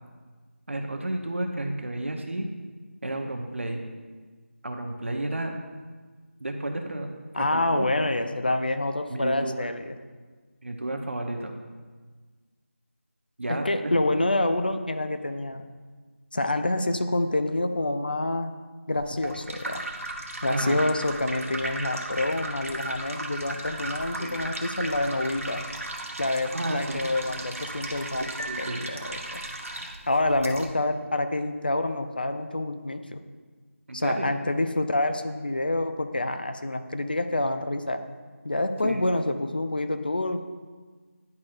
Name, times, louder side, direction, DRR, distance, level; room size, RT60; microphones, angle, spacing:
voice 1, 0.7-2.5 3.0-3.8 4.6-5.5 6.4-7.9 9.1-9.7 10.6-11.5 13.4-13.9 20.5-20.8 24.2-24.3 26.5-27.1 28.2-28.8 33.9-34.3 38.8-39.0, right 1 dB, 60° right, 4 dB, 0.8 m, -32 dB
voice 2, 7.3-9.9 13.5-15.6 16.3-18.5 18.9-19.8 20.4-25.6 26.2-28.3 28.6-29.4 29.8-33.2 33.9-38.0 38.4-40.4, left 2 dB, 40° left, 8 dB, 0.4 m, -27 dB
sound 1, 18.9-30.7, right 1 dB, 80° right, 0.9 m, -36 dB
sound 2, 28.4-29.9, right 2 dB, 30° right, 0.5 m, -41 dB
10.5 x 4.2 x 2.5 m, 1.4 s
figure-of-eight pair, 175°, 7 cm